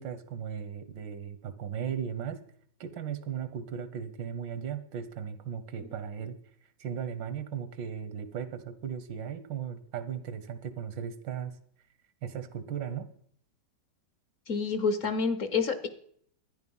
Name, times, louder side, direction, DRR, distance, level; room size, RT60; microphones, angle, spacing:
voice 1, 0.0-2.4 2.8-6.4 6.8-11.5 12.2-13.1, right 8 dB, 90° right, 12 dB, 1.8 m, -37 dB
voice 2, 14.5-15.9, left 5 dB, 50° left, 11 dB, 1.1 m, -28 dB
13.0 x 9.8 x 5.5 m, 0.65 s
omnidirectional pair, 1.9 m